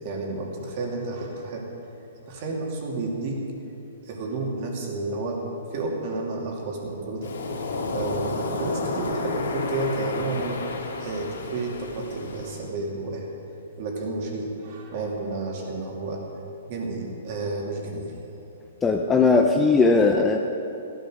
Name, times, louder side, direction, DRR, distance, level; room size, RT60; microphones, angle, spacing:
voice 1, 0.0-1.7 2.3-3.4 4.0-5.4 5.7-7.4 7.9-10.7 11.0-13.3 13.8-16.2 16.7-18.2, right 2 dB, 30° right, 0 dB, 2.5 m, -31 dB
Waves surf, 7.2-12.7, left 3 dB, 80° left, 2.3 m, -31 dB
voice 2, 18.8-20.4, left 4 dB, 10° left, 3 dB, 0.5 m, -18 dB
16.0 x 12.5 x 6.4 m, 2.9 s
hypercardioid pair, 175°, 0 cm